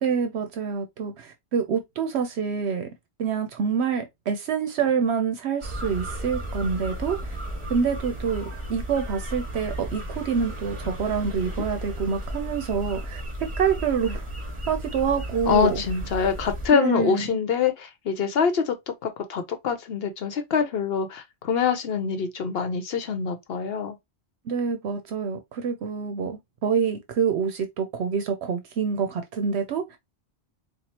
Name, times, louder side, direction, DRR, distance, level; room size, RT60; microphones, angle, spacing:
voice 1, 0.0-2.9 3.2-7.4 7.7-13.2 13.6-14.3 14.7-15.8 16.7-17.4 24.5-30.0, right 6 dB, 75° right, 0.9 m, -26 dB
sound 1, 5.6-16.7, equal, 30° right, 1.4 m, -34 dB
voice 2, 15.5-18.7 19.0-24.0, left 6 dB, 65° left, 0.9 m, -25 dB
4.4 x 2.4 x 2.8 m
omnidirectional pair, 1.1 m